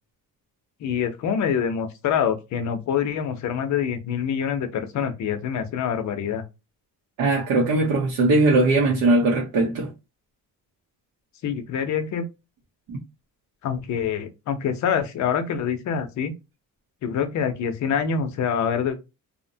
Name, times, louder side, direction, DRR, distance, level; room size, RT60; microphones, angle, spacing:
voice 1, 0.8-6.4 11.4-12.3 13.6-16.3 17.0-19.0, left 7 dB, 50° left, 0.6 m, -25 dB
voice 2, 7.2-9.9 12.9-13.0, right 2 dB, 75° right, 0.8 m, -20 dB
2.7 x 2.1 x 2.6 m
cardioid pair, 160°, 36 cm